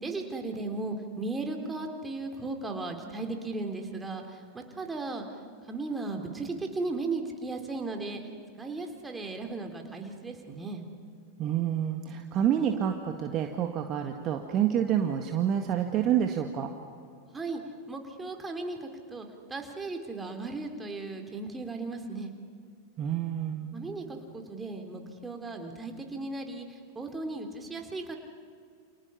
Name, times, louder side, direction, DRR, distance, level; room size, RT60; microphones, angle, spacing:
voice 1, 0.0-5.2 5.7-8.2 8.6-10.8 17.3-17.6 17.9-22.3 23.7-28.2, right 3 dB, 10° right, 4 dB, 3.3 m, -36 dB
voice 2, 11.4-16.7 23.0-23.7, right 9 dB, 35° right, 4 dB, 1.8 m, -28 dB
30.0 x 28.5 x 5.7 m, 2.2 s
figure-of-eight pair, 90°, 0 cm